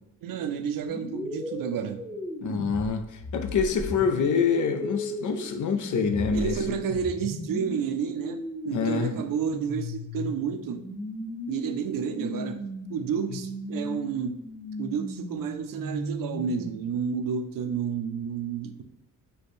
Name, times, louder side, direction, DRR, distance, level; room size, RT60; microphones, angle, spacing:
voice 1, 0.2-2.0 6.3-10.8 11.5-12.6 12.9-14.4 14.8-18.8, right 7 dB, 70° right, 8 dB, 0.5 m, -30 dB
sound 1, 0.9-17.0, left 1 dB, 5° left, 0.9 m, -37 dB
voice 2, 2.4-3.0 3.3-6.8 8.7-9.1, left 5 dB, 60° left, 7 dB, 0.5 m, -26 dB
3.3 x 2.2 x 4.1 m, 0.88 s
cardioid pair, 90°, 35 cm